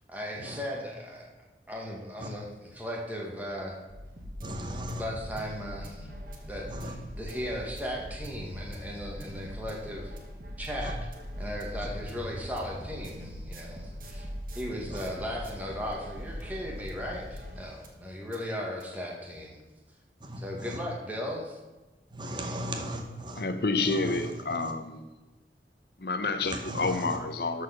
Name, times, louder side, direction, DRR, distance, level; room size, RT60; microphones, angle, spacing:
voice 1, 0.1-1.3 1.7-3.8 4.6-6.1 6.4-10.1 10.6-11.0 11.4-14.3 14.5-19.6 20.4-21.6, equal, 10° right, -2 dB, 1.7 m, -37 dB
sound 1, 3.9-18.0 18.3-18.4 18.8-18.9, equal, 50° right, 1.6 m, -41 dB
voice 2, 4.4-5.0 6.7-6.9 10.8-10.9 14.9-15.0 20.2-20.8 22.1-23.4 23.9-24.2 26.4-27.2, right 1 dB, 25° right, 4 dB, 1.0 m, -37 dB
voice 3, 23.3-25.1 26.0-27.6, left 3 dB, 60° left, 9 dB, 0.9 m, -29 dB
13.0 x 4.8 x 5.8 m, 1.1 s
head